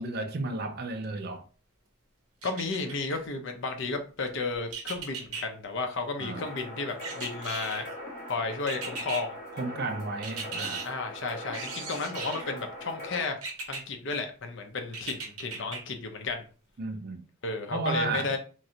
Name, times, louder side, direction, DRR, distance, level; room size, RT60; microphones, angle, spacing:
voice 1, 0.0-1.4 6.2-6.4 9.5-10.9 16.8-17.2 17.7-18.4, right 3 dB, 45° right, 0.4 m, -33 dB
voice 2, 2.4-7.9 8.3-9.4 10.8-13.4 13.7-16.4 17.4-18.4, left 3 dB, 55° left, 0.5 m, -33 dB
sound 1, 2.4-3.2 4.7-5.4 7.0-8.0 8.7-9.2 10.2-10.9 11.5-12.5 13.4-13.8 14.9-15.8 16.3-16.4, right 4 dB, 80° right, 0.8 m, -37 dB
sound 2, 6.4-13.2, left 1 dB, 40° left, 0.9 m, -41 dB
3.1 x 2.5 x 2.8 m
head